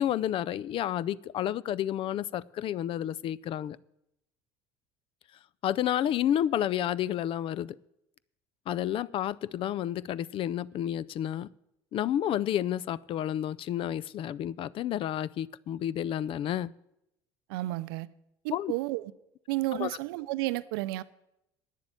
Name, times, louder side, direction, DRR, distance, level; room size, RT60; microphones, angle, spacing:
voice 1, 0.0-3.8 5.6-7.8 8.7-11.5 11.9-16.7 18.5-18.7 19.7-19.9, left 11 dB, 50° left, 0.4 m, -30 dB
voice 2, 17.5-18.1 18.4-19.1 19.5-21.0, right 18 dB, 85° right, 0.5 m, -32 dB
9.1 x 7.2 x 9.0 m
supercardioid pair, 90°, 12 cm